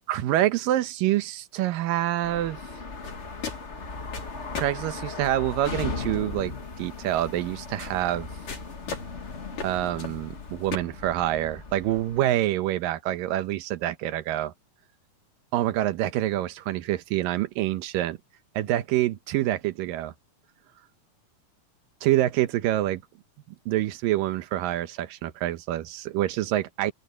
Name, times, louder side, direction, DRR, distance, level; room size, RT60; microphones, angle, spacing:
voice 1, 0.1-2.6 4.5-8.3 9.6-14.5 15.5-18.2 18.6-20.1 22.0-23.0 23.7-26.9, right 14 dB, 80° right, 2.6 m, -26 dB
sound 1, 2.2-12.2, left 4 dB, 40° left, 1.0 m, -37 dB
sound 2, 2.9-10.8, left 5 dB, 65° left, 6.4 m, -41 dB
open air
omnidirectional pair, 4.0 m